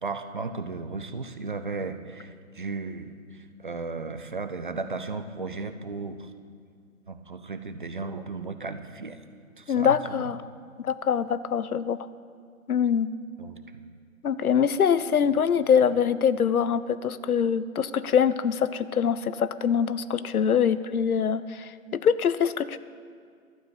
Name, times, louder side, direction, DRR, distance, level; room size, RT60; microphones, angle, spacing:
voice 1, 0.0-6.3 7.1-9.2 9.6-10.0 13.4-13.8, right 3 dB, 40° right, 10 dB, 0.5 m, -35 dB
voice 2, 9.7-10.4 10.8-12.0 12.7-13.1 14.2-22.8, left 7 dB, 90° left, 15 dB, 0.6 m, -24 dB
12.0 x 6.8 x 7.9 m, 2.1 s
figure-of-eight pair, 155°, 42 cm